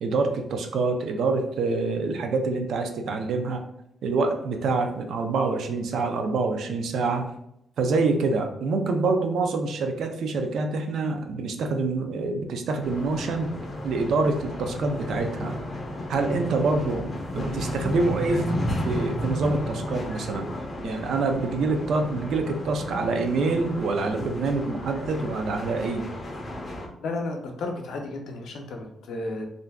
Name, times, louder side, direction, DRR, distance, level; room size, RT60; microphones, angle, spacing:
voice 1, 0.0-3.6 4.0-7.2 7.8-13.5 13.8-15.6 16.1-17.0 17.3-18.4 18.8-20.5 20.8-26.1, right 3 dB, 65° right, 5 dB, 0.4 m, -26 dB
sound 1, 12.8-26.9, left 1 dB, 25° left, 0.4 m, -33 dB
voice 2, 27.0-29.5, left 2 dB, 75° left, 3 dB, 0.5 m, -33 dB
2.5 x 2.2 x 3.4 m, 0.77 s
cardioid pair, 145°, 0 cm